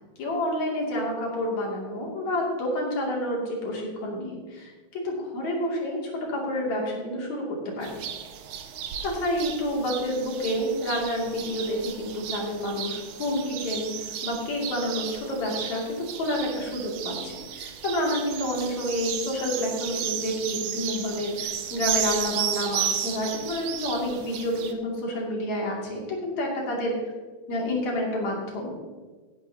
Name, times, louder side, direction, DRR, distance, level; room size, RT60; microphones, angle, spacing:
voice 1, 0.2-8.0 9.0-27.1 27.5-28.8, left 1 dB, 70° left, -2 dB, 4.0 m, -29 dB
sound 1, 7.8-24.7, right 9 dB, 85° right, 2.4 m, -34 dB
16.5 x 10.0 x 2.9 m, 1.4 s
omnidirectional pair, 3.4 m